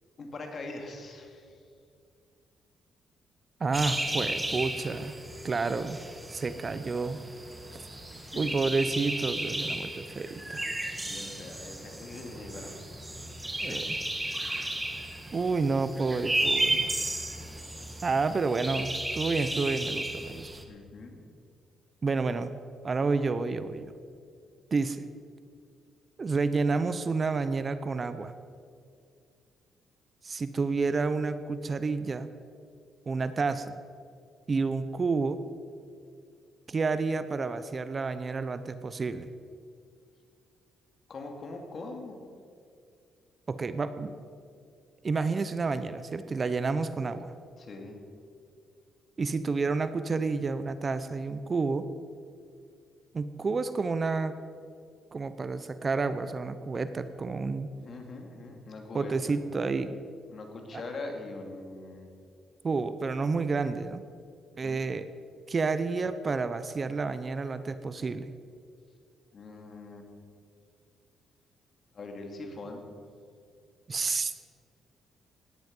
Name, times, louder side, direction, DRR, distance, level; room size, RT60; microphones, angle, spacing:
voice 1, 0.2-1.6 8.1-8.6 11.0-12.7 13.6-13.9 20.7-21.2 41.1-42.2 47.6-48.0 57.8-59.4 60.3-62.1 64.5-64.8 69.3-70.1 71.9-72.9, left 2 dB, 50° left, 3 dB, 2.6 m, -42 dB
voice 2, 3.6-5.1 5.4-6.0 6.3-7.2 8.4-10.7 13.6-13.8 15.3-16.9 18.0-20.5 22.0-22.6 22.8-23.9 24.7-25.0 26.2-28.3 30.2-32.3 33.1-33.7 34.5-35.4 36.7-39.3 43.5-44.1 45.0-47.3 49.2-51.9 53.1-54.4 55.1-57.7 58.9-60.0 60.7-60.8 62.6-64.0 64.6-65.1 65.5-68.3 73.9-74.3, right 4 dB, 35° right, 12 dB, 0.7 m, -30 dB
sound 1, 3.7-20.6, right 1 dB, 10° right, 1.5 m, -34 dB
17.0 x 10.5 x 5.4 m, 2.3 s
cardioid pair, 90°, 0 cm